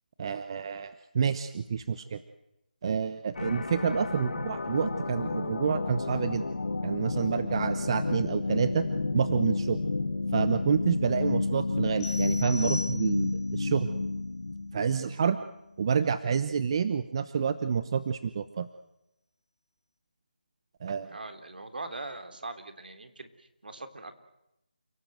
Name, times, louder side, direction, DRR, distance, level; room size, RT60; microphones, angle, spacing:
voice 1, 0.2-2.2 2.8-6.5 6.8-8.9 9.1-9.8 10.3-13.9 14.7-15.4 15.8-18.7 20.8-21.1, right 6 dB, 30° right, 12 dB, 1.0 m, -28 dB
sound 1, 3.3-15.1, left 3 dB, 65° left, 2.2 m, -31 dB
sound 2, 12.0-13.5, left 3 dB, 25° left, 3.1 m, -39 dB
voice 2, 21.1-24.1, right 2 dB, 65° right, 8 dB, 3.5 m, -41 dB
29.5 x 18.0 x 7.9 m, 0.87 s
figure-of-eight pair, 165°, 5 cm